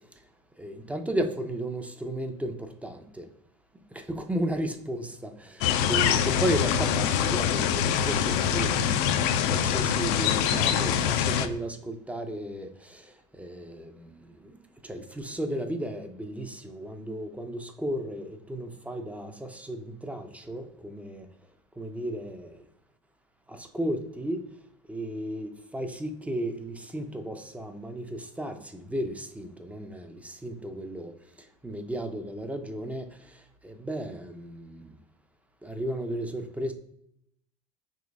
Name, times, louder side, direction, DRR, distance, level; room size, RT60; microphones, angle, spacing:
voice 1, 0.6-3.3 3.9-8.9 9.3-21.3 21.8-22.6 23.5-24.4 24.9-35.0 35.6-36.7, right 1 dB, 5° right, 0.5 m, -34 dB
sound 1, 5.6-11.5, left 9 dB, 55° left, 0.4 m, -24 dB
5.0 x 3.2 x 2.4 m
hypercardioid pair, 80°, 21 cm